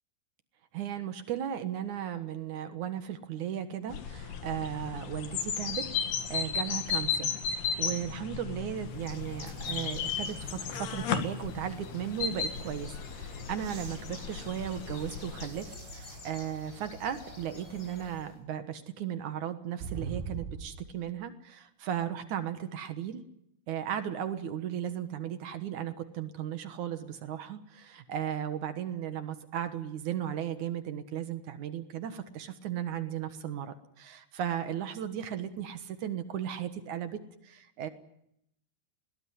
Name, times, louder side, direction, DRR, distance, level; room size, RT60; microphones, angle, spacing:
voice 1, 0.7-5.8 6.3-23.2 23.7-37.9, right 10 dB, 65° right, 10 dB, 2.0 m, -36 dB
sound 1, 3.9-15.5, left 7 dB, 65° left, 3.7 m, -35 dB
Bird, 8.7-18.4, left 2 dB, 25° left, 4.7 m, -48 dB
sound 2, 13.6-16.3 17.0-17.1 19.8-21.0 22.9-23.0, right 6 dB, 90° right, 4.2 m, -43 dB
21.0 x 18.5 x 9.6 m, 0.76 s
omnidirectional pair, 5.2 m